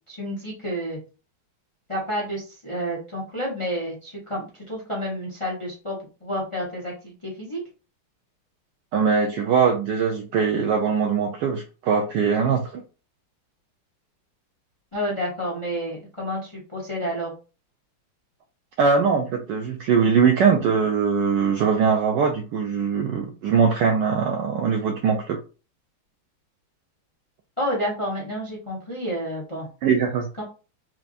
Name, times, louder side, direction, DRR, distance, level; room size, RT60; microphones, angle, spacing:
voice 1, 0.1-1.0 1.9-7.6 14.9-17.3 27.6-29.7 30.4-30.5, equal, 25° left, -4 dB, 0.7 m, -30 dB
voice 2, 8.9-12.8 18.8-25.4 29.8-30.3, right 6 dB, 75° right, 3 dB, 1.0 m, -21 dB
4.4 x 2.5 x 2.5 m, 0.33 s
omnidirectional pair, 2.3 m